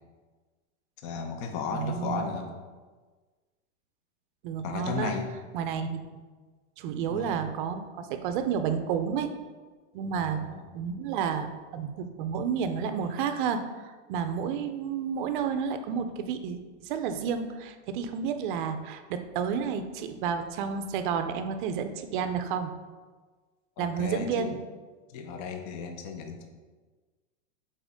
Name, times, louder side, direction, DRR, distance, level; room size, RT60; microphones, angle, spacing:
voice 1, 1.0-2.5 4.6-5.3 7.1-7.5 10.2-10.7 23.8-24.5 25.1-26.5, left 5 dB, 35° left, 5 dB, 0.6 m, -35 dB
voice 2, 1.7-2.3 4.4-5.1 5.5-6.2 6.8-9.3 9.9-10.4 10.7-22.7 23.8-24.6, right 7 dB, 45° right, 8 dB, 0.5 m, -31 dB
5.1 x 4.2 x 5.0 m, 1.4 s
supercardioid pair, 160°, 37 cm